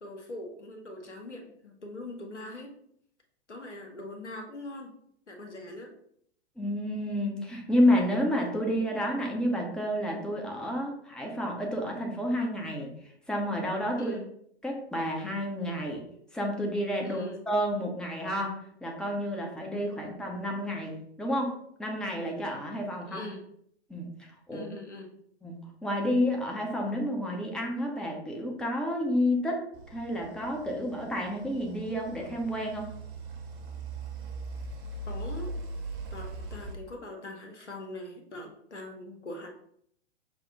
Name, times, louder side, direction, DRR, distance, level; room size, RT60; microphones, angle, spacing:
voice 1, 0.0-2.8 3.5-4.9 5.3-5.9 14.0-14.3 17.0-17.4 23.1-23.4 24.5-25.1 35.1-35.5 36.1-39.5, left 1 dB, 90° left, 2 dB, 1.1 m, -42 dB
voice 2, 6.6-12.9 13.3-14.1 14.6-16.0 16.3-23.2 23.9-24.7 25.4-29.6 29.9-32.9, equal, ahead, -1 dB, 0.7 m, -30 dB
sound 1, 29.7-36.7, right 2 dB, 50° right, 1.2 m, -40 dB
6.2 x 2.3 x 3.7 m, 0.68 s
figure-of-eight pair, 110°, 34 cm